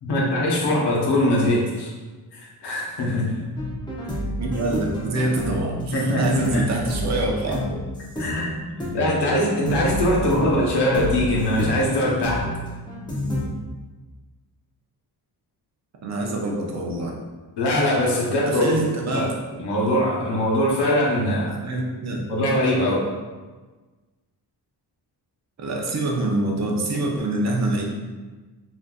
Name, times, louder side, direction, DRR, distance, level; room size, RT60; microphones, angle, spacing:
voice 1, 0.0-1.9 2.3-3.4 5.9-6.2 6.5-6.6 8.2-8.5 8.9-12.4 17.6-18.8 19.1-19.3 19.5-21.6 22.3-23.1, left 1 dB, 80° left, -3 dB, 0.9 m, -22 dB
sound 1, 3.6-13.4, equal, 10° left, 0.5 m, -29 dB
voice 2, 4.3-7.8 16.0-17.2 18.5-19.3 21.5-22.3 25.6-27.8, right 2 dB, 45° right, 0 dB, 0.5 m, -25 dB
3.7 x 2.6 x 2.2 m, 1.3 s
wide cardioid pair, 175°, 41 cm